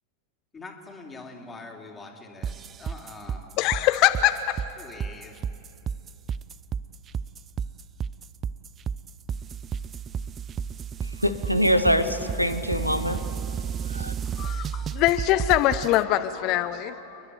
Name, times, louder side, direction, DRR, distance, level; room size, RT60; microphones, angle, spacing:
voice 1, 0.5-3.4 4.8-5.3, left 3 dB, 15° left, 2 dB, 2.8 m, -43 dB
sound 1, 2.4-16.0, right 7 dB, 25° right, 0.4 m, -32 dB
voice 2, 3.6-4.3 14.4-17.2, left 14 dB, 40° left, 11 dB, 0.6 m, -23 dB
voice 3, 11.0-13.2 13.9-14.1, equal, 90° right, 12 dB, 1.0 m, -24 dB
29.5 x 11.0 x 9.5 m, 2.9 s
figure-of-eight pair, 90°, 0 cm